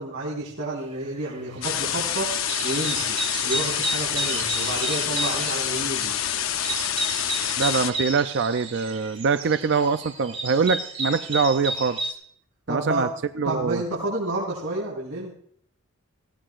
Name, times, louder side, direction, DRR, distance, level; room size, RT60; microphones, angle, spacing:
voice 1, 0.0-2.3 2.6-3.2 3.4-6.1 12.7-13.1 13.4-15.3, right 2 dB, 85° right, -7 dB, 4.8 m, -30 dB
sound 1, 1.0-1.4 1.7-12.1, right 2 dB, 40° right, 2.4 m, -32 dB
sound 2, 1.6-7.9, left 10 dB, 70° left, 0.7 m, -27 dB
voice 2, 7.6-12.0 12.7-13.1 13.4-13.8, right 5 dB, 55° right, 10 dB, 0.5 m, -23 dB
20.0 x 16.5 x 2.5 m, 0.63 s
head